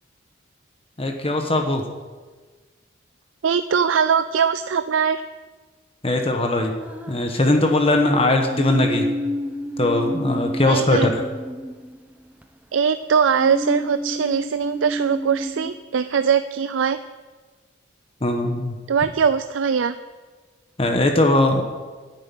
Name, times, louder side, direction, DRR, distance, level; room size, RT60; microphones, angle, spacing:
voice 1, 1.0-1.8 6.0-6.7 7.1-9.1 9.8-11.1 18.2-18.8 20.8-21.6, left 1 dB, 30° left, 4 dB, 1.1 m, -20 dB
voice 2, 3.4-5.2 10.7-11.1 12.7-17.0 18.9-19.9, right 6 dB, 90° right, 12 dB, 0.4 m, -21 dB
sound 1, 6.8-7.8 8.5-12.4 13.4-15.8, equal, 5° right, 0.8 m, -29 dB
9.9 x 9.0 x 9.1 m, 1.4 s
head